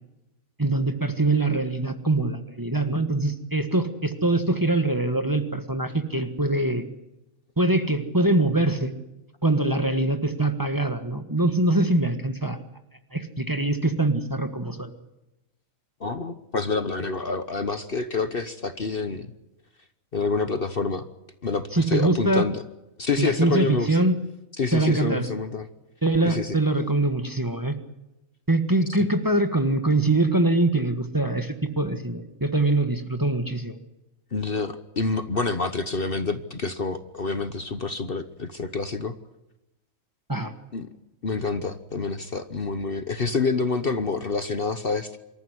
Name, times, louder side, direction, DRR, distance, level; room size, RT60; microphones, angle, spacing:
voice 1, 0.6-6.8 7.6-8.9 9.4-12.6 13.1-14.9 21.7-22.5 23.2-24.2 24.7-25.3 26.0-27.8 28.5-33.7 40.3-40.5, right 2 dB, 15° right, 7 dB, 1.5 m, -23 dB
voice 2, 16.0-19.3 20.1-21.0 21.4-22.6 23.0-24.0 24.6-25.7 26.2-26.6 29.0-29.1 34.3-39.2 40.7-40.9 41.2-45.2, left 4 dB, 45° left, 10 dB, 1.2 m, -27 dB
25.5 x 14.0 x 9.9 m, 0.96 s
omnidirectional pair, 1.4 m